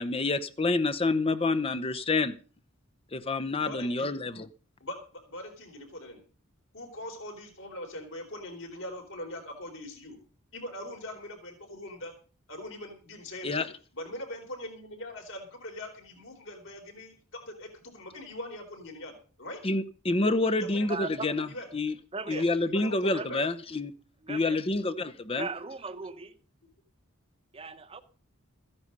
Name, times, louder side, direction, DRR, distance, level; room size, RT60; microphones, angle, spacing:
voice 1, 0.0-2.4 3.1-4.5 13.4-13.7 19.6-21.5 21.7-21.9 22.3-23.9 24.3-25.5, left 2 dB, 25° left, 0.8 m, -28 dB
voice 2, 3.6-4.1 4.8-6.2 6.7-10.2 10.5-12.1 12.5-19.6 20.6-20.9 21.2-21.7 22.3-23.4, left 1 dB, 65° left, 4.3 m, -42 dB
voice 3, 20.9-21.3 22.1-22.5 23.1-23.5 24.2-24.6 25.3-26.4 27.5-28.0, right 4 dB, 25° right, 1.0 m, -38 dB
15.0 x 9.9 x 5.5 m
head